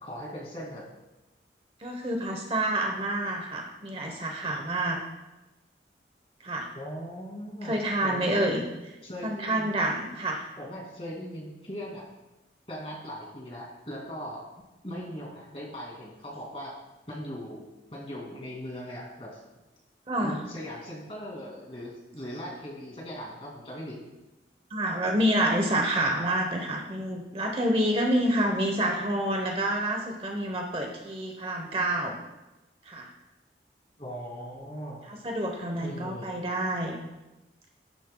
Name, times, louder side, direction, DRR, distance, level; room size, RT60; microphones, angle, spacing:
voice 1, 0.0-0.8 6.7-8.5 9.0-9.7 10.6-12.0 12.7-14.4 14.8-16.7 17.1-19.3 20.2-24.0 34.0-35.0 35.8-36.3, equal, 30° left, -3 dB, 2.3 m, -39 dB
voice 2, 1.8-5.0 6.4-6.7 7.6-8.6 9.2-10.4 20.1-20.4 24.7-32.2 32.9-33.1 35.1-37.0, right 1 dB, 30° right, 2 dB, 0.9 m, -28 dB
11.5 x 9.1 x 2.2 m, 1.0 s
head